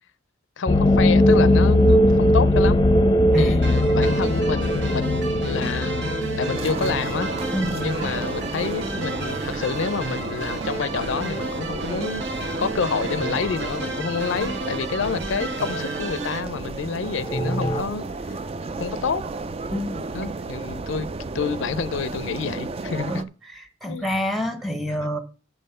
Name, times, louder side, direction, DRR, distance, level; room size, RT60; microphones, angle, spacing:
voice 1, 0.6-2.8 3.4-6.1 6.4-7.3 7.7-18.0 18.3-18.4 18.8-19.2 19.9-21.1 21.3-23.2 23.9-24.1, left 5 dB, 75° left, 0.5 m, -28 dB
sound 1, 0.7-10.2 10.4-10.5 10.7-10.8 17.2-17.8, left 1 dB, 20° left, 0.6 m, -20 dB
voice 2, 3.3-3.7 7.5-7.8 19.7-20.0 23.1-25.2, equal, ahead, 0.9 m, -27 dB
sound 2, 3.6-16.4, right 2 dB, 65° right, 1.2 m, -32 dB
sound 3, 6.5-23.2, right 3 dB, 30° right, 0.4 m, -32 dB
7.2 x 5.5 x 5.5 m
head